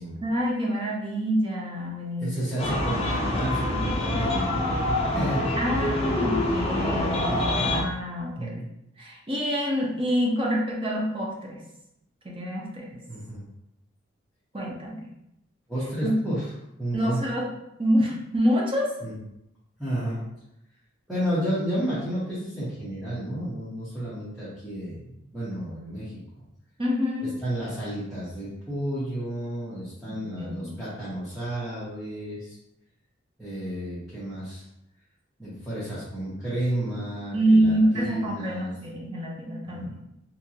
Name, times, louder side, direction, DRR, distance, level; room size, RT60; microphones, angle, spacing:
voice 1, 0.2-2.6 5.6-8.6 9.0-11.6 12.2-13.0 14.5-15.1 16.0-16.1 16.9-17.5 17.8-18.9 26.8-27.3 30.1-30.8 37.3-39.9, equal, 25° right, -2 dB, 0.6 m, -26 dB
voice 2, 2.2-5.4 8.4-8.6 13.1-13.4 15.7-16.4 16.8-17.2 19.0-19.2 19.8-20.2 21.1-26.2 27.4-32.6 33.4-34.6 35.4-38.7 39.6-39.9, right 1 dB, ahead, -13 dB, 0.9 m, -31 dB
sound 1, 2.6-7.8, left 1 dB, 30° left, 0.5 m, -26 dB
3.6 x 2.8 x 2.8 m, 0.84 s
head